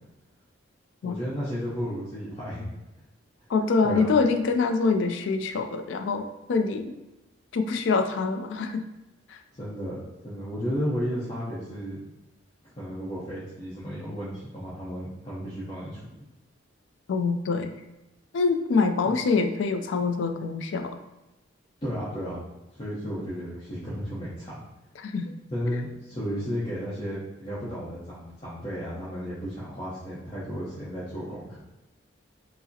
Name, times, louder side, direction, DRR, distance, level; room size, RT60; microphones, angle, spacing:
voice 1, 1.0-2.7 3.8-4.1 9.5-12.0 12.6-16.0 21.8-22.4 22.7-24.5 25.5-31.6, equal, 30° left, -10 dB, 0.8 m, -33 dB
voice 2, 3.5-6.9 7.5-8.8 17.1-17.7 18.3-21.0 25.0-25.3, left 4 dB, 65° left, 7 dB, 0.3 m, -25 dB
4.7 x 2.0 x 2.7 m, 1.0 s
head